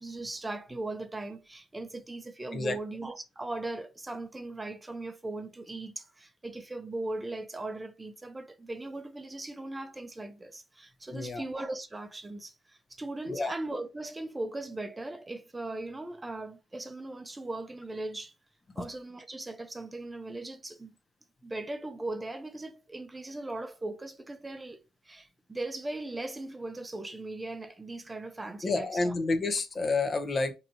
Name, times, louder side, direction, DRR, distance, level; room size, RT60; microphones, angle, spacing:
voice 1, 0.0-18.3 18.8-20.9 21.4-29.1, right 2 dB, 20° right, 0.5 m, -39 dB
voice 2, 11.1-11.4 13.3-13.5 18.8-18.9 28.6-30.5, left 3 dB, 35° left, 0.6 m, -29 dB
4.1 x 2.7 x 2.7 m
cardioid pair, 90°, 0 cm